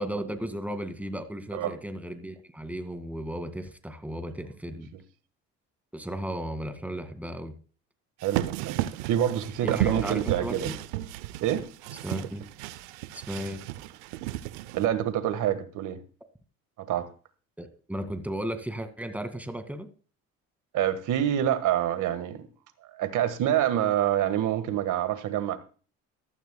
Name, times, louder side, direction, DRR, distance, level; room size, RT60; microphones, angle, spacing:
voice 1, 0.0-4.9 5.9-7.5 9.6-10.8 12.0-12.4 13.1-13.6 17.6-19.9, equal, 5° right, 9 dB, 2.1 m, -35 dB
voice 2, 8.2-10.7 11.4-11.7 14.7-16.0 16.8-17.1 20.7-22.5 22.9-25.6, right 11 dB, 65° right, 12 dB, 1.7 m, -27 dB
sound 1, 8.2-14.8, right 14 dB, 85° right, 0.7 m, -33 dB
14.5 x 13.0 x 2.3 m, 0.38 s
supercardioid pair, 70°, 33 cm